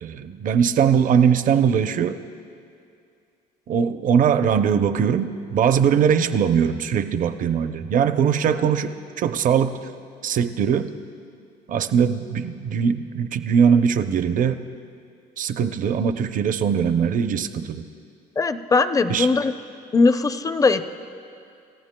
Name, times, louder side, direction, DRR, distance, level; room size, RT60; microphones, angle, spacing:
voice 1, 0.0-2.2 3.7-9.8 10.2-10.9 11.7-14.6 15.4-17.8 19.1-19.3, right 7 dB, 50° right, 10 dB, 0.6 m, -21 dB
voice 2, 18.4-19.5 19.9-20.8, left 4 dB, 20° left, 11 dB, 0.5 m, -19 dB
28.0 x 14.5 x 2.2 m, 2.4 s
cardioid pair, 110°, 17 cm